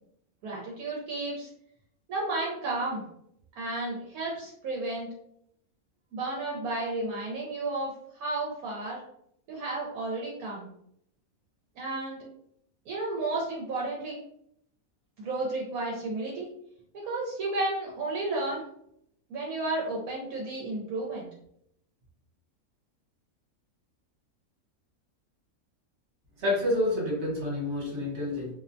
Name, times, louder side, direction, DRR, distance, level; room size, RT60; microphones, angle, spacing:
voice 1, 0.4-1.5 2.1-3.0 3.6-5.1 6.1-9.0 9.5-10.7 11.8-12.2 12.9-14.2 15.2-16.5 16.9-18.6 19.3-21.3, right 2 dB, 75° right, -3 dB, 1.1 m, -32 dB
voice 2, 26.4-28.5, left 1 dB, 50° right, -3 dB, 1.2 m, -28 dB
2.7 x 2.1 x 2.5 m, 0.72 s
omnidirectional pair, 1.6 m